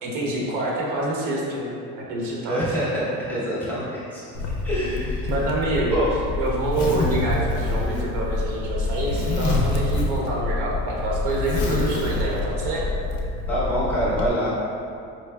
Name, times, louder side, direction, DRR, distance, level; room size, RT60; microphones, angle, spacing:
voice 1, 0.0-2.8 3.7-3.8 5.2-6.0 6.4-12.9, right 1 dB, 65° right, -4 dB, 0.9 m, -26 dB
voice 2, 2.5-3.8 4.1-4.2 4.6-5.3 5.9-6.1 13.5-14.5, equal, 5° left, -10 dB, 0.8 m, -25 dB
Zipper (clothing), 4.4-14.3, left 2 dB, 45° left, 0.5 m, -26 dB
4.6 x 3.2 x 2.2 m, 2.5 s
cardioid pair, 155°, 35 cm